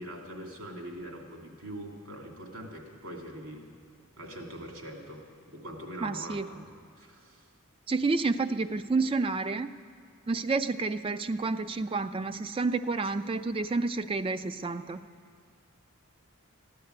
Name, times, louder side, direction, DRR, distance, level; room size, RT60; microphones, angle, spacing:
voice 1, 0.0-3.6 4.2-6.7 7.0-7.5, right 1 dB, 75° right, 0 dB, 2.7 m, -43 dB
voice 2, 6.0-6.5 7.9-9.7 10.3-15.0, right 3 dB, 25° right, 11 dB, 0.3 m, -29 dB
14.5 x 10.5 x 7.9 m, 2.3 s
head